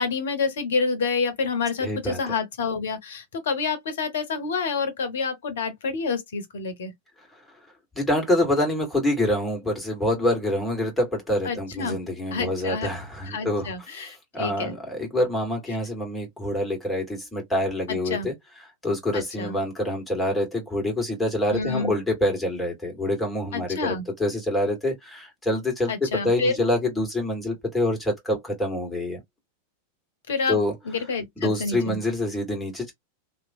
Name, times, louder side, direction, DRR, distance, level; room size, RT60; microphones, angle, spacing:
voice 1, 0.0-6.9 11.4-12.0 12.3-13.0 13.2-14.8 17.9-18.3 19.1-19.6 21.5-21.9 23.5-24.0 25.9-26.6 30.3-30.6 30.8-32.0, left 4 dB, 60° left, 0.9 m, -28 dB
voice 2, 1.8-2.2 7.9-18.3 18.8-29.2 30.5-30.7 31.4-32.9, left 1 dB, 5° left, 1.7 m, -26 dB
2.9 x 2.4 x 2.6 m
figure-of-eight pair, 90°, 0 cm